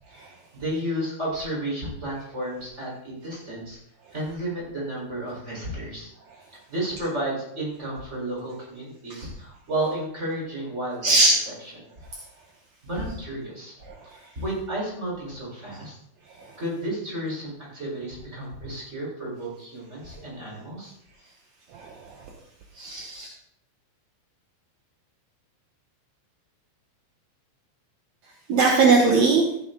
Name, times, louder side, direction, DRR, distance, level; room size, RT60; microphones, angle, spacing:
voice 1, 0.5-3.8 4.1-6.1 6.7-11.2 11.7-11.9 12.8-13.7 14.3-16.0 16.6-20.9, right 1 dB, 15° right, -4 dB, 4.4 m, -32 dB
voice 2, 21.7-22.2 22.8-23.3 28.5-29.5, right 3 dB, 65° right, 0 dB, 1.9 m, -20 dB
14.5 x 9.3 x 3.8 m, 0.76 s
omnidirectional pair, 4.8 m